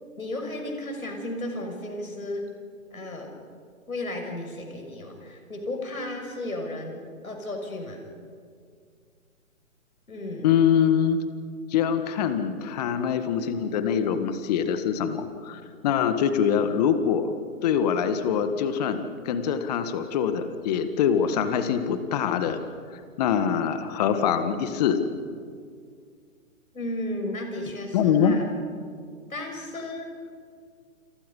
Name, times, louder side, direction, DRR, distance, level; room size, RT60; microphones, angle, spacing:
voice 1, 0.2-2.5 2.9-3.4 3.9-8.1 10.1-10.5 26.7-28.4 29.3-30.1, left 1 dB, 90° left, 3 dB, 6.2 m, -34 dB
voice 2, 10.4-11.2 11.7-17.3 17.6-22.6 23.2-25.0 27.9-28.4, left 8 dB, 30° left, 9 dB, 1.7 m, -24 dB
29.0 x 28.0 x 5.5 m, 2.1 s
hypercardioid pair, 145°, 41 cm